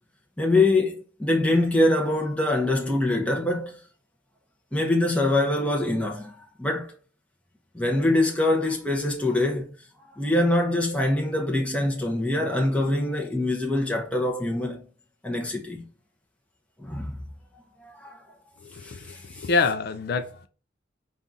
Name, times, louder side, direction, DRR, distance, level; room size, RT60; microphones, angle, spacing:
voice 1, 0.4-3.8 4.7-6.9 7.7-9.7 10.2-14.8 15.2-15.8 16.8-17.1 17.8-18.2 18.8-19.5, left 2 dB, 5° left, 0.7 m, -24 dB
voice 2, 18.6-20.5, left 4 dB, 55° left, 0.4 m, -27 dB
5.3 x 2.4 x 3.8 m
head